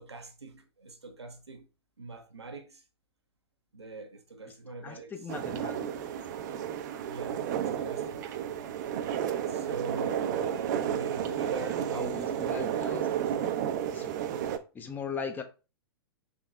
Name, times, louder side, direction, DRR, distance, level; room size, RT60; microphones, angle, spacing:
voice 1, 0.0-1.7 2.0-2.8 3.7-5.1 5.5-5.9 7.0-7.5 7.7-8.3 9.5-13.4, right 3 dB, 85° right, 0.7 m, -42 dB
voice 2, 4.8-5.9 11.9-13.1 13.9-14.1 14.7-15.4, left 5 dB, 15° left, 0.4 m, -39 dB
sound 1, 5.3-14.6, right 9 dB, 45° right, 0.4 m, -32 dB
5.2 x 3.6 x 2.3 m
figure-of-eight pair, 105°, 14 cm